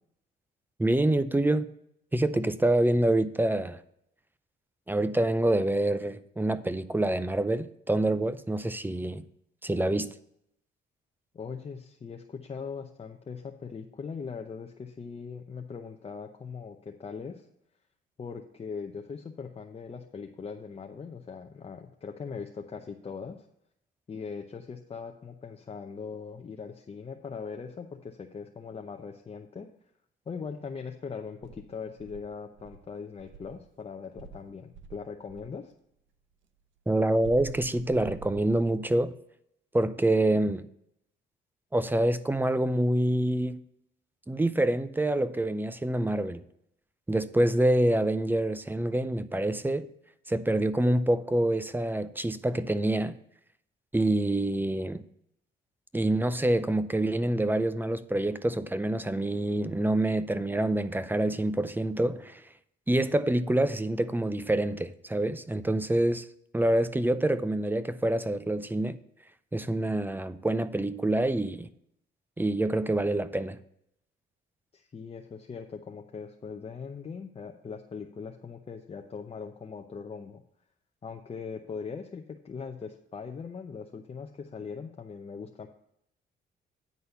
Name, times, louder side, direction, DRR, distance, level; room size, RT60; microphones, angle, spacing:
voice 1, 0.8-1.7 2.1-3.8 4.9-9.2 9.6-10.1 36.9-39.1 39.7-40.7 41.7-43.6 44.3-46.4 47.1-49.9 50.3-53.2 53.9-55.0 55.9-62.4 62.9-66.3 66.5-69.0 69.5-71.7 72.4-73.6, right 1 dB, 10° right, 0.5 m, -26 dB
voice 2, 11.3-17.5 18.2-23.5 24.1-29.7 30.3-35.7 74.7-80.4 81.0-85.7, left 5 dB, 30° left, 0.7 m, -40 dB
Insect, 31.4-33.7 34.2-35.6 37.2-38.9, right 6 dB, 75° right, 0.7 m, -47 dB
9.6 x 4.1 x 6.8 m
cardioid pair, 90°, 20 cm